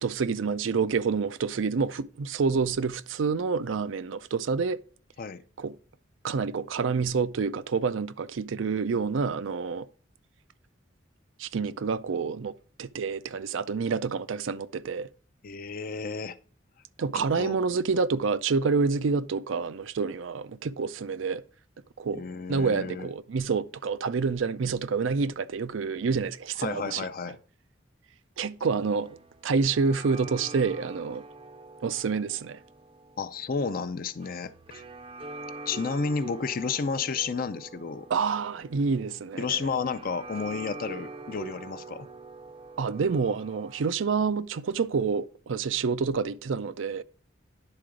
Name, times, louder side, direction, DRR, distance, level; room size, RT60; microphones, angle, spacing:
voice 1, 0.0-4.8 5.6-5.7 6.2-9.9 11.4-12.5 12.8-15.1 17.0-21.4 22.0-22.2 22.5-27.1 28.4-29.2 29.4-31.2 31.8-32.6 38.1-39.7 42.8-47.0, right 5 dB, 90° right, 0.5 m, -28 dB
voice 2, 15.4-16.4 17.1-17.6 22.1-23.1 26.6-27.4 33.2-34.8 35.7-38.1 39.4-42.1, left 5 dB, 50° left, 0.5 m, -32 dB
sound 1, 28.7-43.9, right 3 dB, 30° right, 0.5 m, -45 dB
10.5 x 3.8 x 5.0 m
head